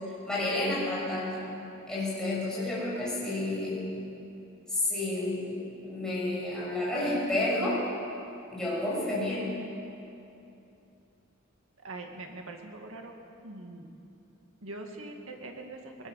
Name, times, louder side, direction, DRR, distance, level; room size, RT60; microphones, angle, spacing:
voice 1, 0.2-1.4 1.9-3.9 4.7-7.8 8.5-9.5, left 2 dB, 5° left, -8 dB, 6.7 m, -30 dB
voice 2, 11.8-13.2 13.4-13.9 14.6-16.1, right 2 dB, 70° right, 3 dB, 2.2 m, -43 dB
21.0 x 19.5 x 6.6 m, 2.7 s
head